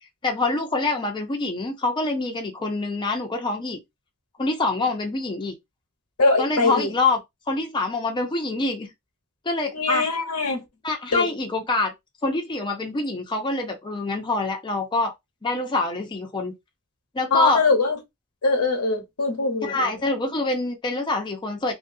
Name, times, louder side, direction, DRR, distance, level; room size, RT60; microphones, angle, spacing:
voice 1, 0.2-3.8 4.4-5.5 6.4-7.2 7.5-8.9 9.5-10.1 10.8-11.9 12.2-15.1 15.4-16.5 17.1-17.6 19.6-21.7, left 2 dB, 20° left, 0.5 m, -25 dB
voice 2, 6.2-6.9 9.7-10.6 11.1-11.3 17.3-18.0 18.4-19.9, left 3 dB, 85° left, 1.0 m, -22 dB
2.7 x 2.6 x 2.6 m
head